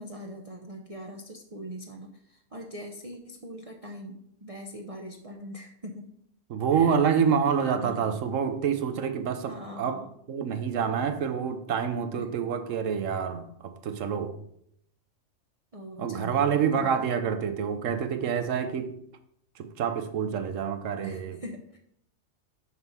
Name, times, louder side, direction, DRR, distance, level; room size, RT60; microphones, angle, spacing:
voice 1, 0.0-6.1 6.7-7.0 7.8-8.1 9.5-10.1 12.0-12.5 15.7-16.9 21.0-21.8, equal, 35° right, 0.7 m, -42 dB
voice 2, 6.5-10.0 10.3-14.4 16.0-18.9 19.6-21.4, right 7 dB, 85° right, 1.2 m, -27 dB
6.2 x 5.7 x 5.5 m
omnidirectional pair, 1.3 m